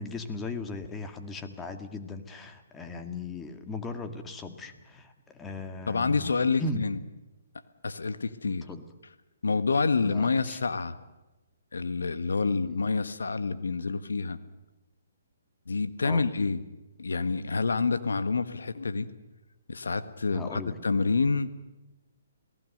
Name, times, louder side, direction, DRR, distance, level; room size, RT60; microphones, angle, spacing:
voice 1, 0.0-6.3 6.6-6.8 8.5-8.8 10.0-10.6 12.5-12.6 16.0-16.3 20.3-20.8, left 3 dB, 15° left, 7 dB, 2.0 m, -37 dB
voice 2, 5.9-7.0 7.8-8.7 9.4-11.0 11.7-14.4 15.7-16.6 17.0-19.1 19.7-21.5, left 4 dB, 80° left, 11 dB, 1.6 m, -28 dB
27.5 x 18.5 x 6.7 m, 1.0 s
hypercardioid pair, 140°, 0 cm